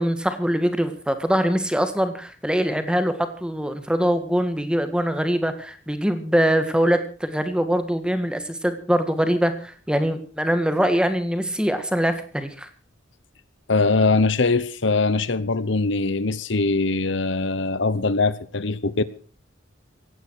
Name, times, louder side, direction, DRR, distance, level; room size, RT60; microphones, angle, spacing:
voice 1, 0.0-12.7, equal, 5° right, 1.7 m, -23 dB
voice 2, 13.7-19.0, left 3 dB, 65° left, 1.0 m, -22 dB
17.5 x 16.0 x 4.7 m
head